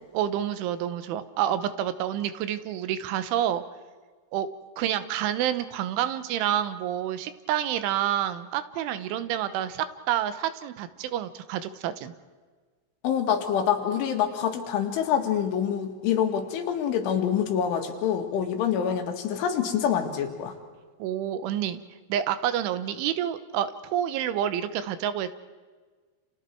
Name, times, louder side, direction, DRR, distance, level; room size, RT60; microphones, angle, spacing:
voice 1, 0.1-3.6 4.3-4.5 4.8-12.1 21.0-21.8 22.1-25.3, right 10 dB, 80° right, 12 dB, 3.5 m, -28 dB
voice 2, 13.0-20.5, left 8 dB, 80° left, 4 dB, 4.4 m, -26 dB
30.0 x 28.5 x 4.6 m, 1.5 s
omnidirectional pair, 5.4 m